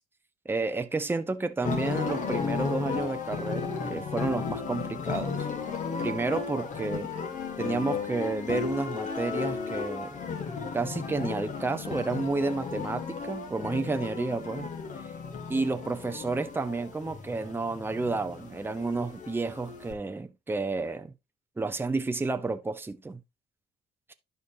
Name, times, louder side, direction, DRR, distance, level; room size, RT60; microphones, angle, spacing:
voice 1, 0.4-5.5 6.0-7.1 7.6-10.2 10.7-14.7 15.0-15.1 15.5-21.1 21.6-23.2, right 3 dB, 15° right, 0.8 m, -31 dB
sound 1, 1.6-19.9, left 5 dB, 50° left, 2.0 m, -34 dB
11.5 x 5.3 x 2.7 m
cardioid pair, 110°, 17 cm